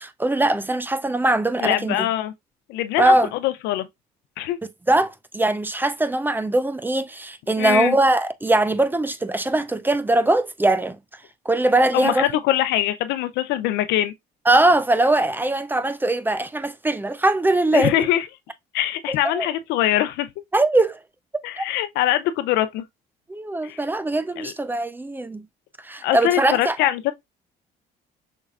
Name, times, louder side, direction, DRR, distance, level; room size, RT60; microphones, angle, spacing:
voice 1, 0.0-2.1 3.0-3.3 4.9-11.0 11.5-12.3 14.5-17.9 19.1-19.5 20.5-21.0 21.6-21.7 23.3-25.4 25.8-26.8, right 2 dB, 10° right, 0.4 m, -21 dB
voice 2, 1.6-2.3 2.7-3.1 3.4-3.9 4.4-4.6 7.6-8.0 11.9-14.1 17.7-18.3 18.7-20.3 21.4-22.8 23.6-23.8 24.4-24.5 26.0-27.1, left 13 dB, 90° left, 0.6 m, -23 dB
5.5 x 4.0 x 2.4 m
cardioid pair, 110°, 17 cm